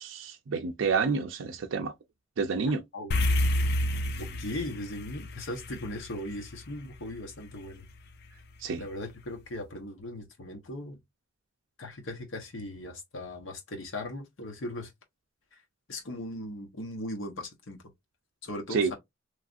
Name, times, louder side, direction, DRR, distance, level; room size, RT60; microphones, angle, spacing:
voice 1, 0.0-1.9 2.4-2.8 8.6-8.8 18.7-18.9, right 5 dB, 85° right, 0.5 m, -29 dB
voice 2, 2.6-3.2 4.2-7.9 8.8-11.0 11.8-14.9 15.5-15.6 15.9-17.8 18.4-18.9, left 1 dB, 85° left, 1.0 m, -38 dB
sound 1, 3.1-7.6, left 1 dB, 55° left, 0.4 m, -29 dB
3.1 x 2.4 x 2.5 m
head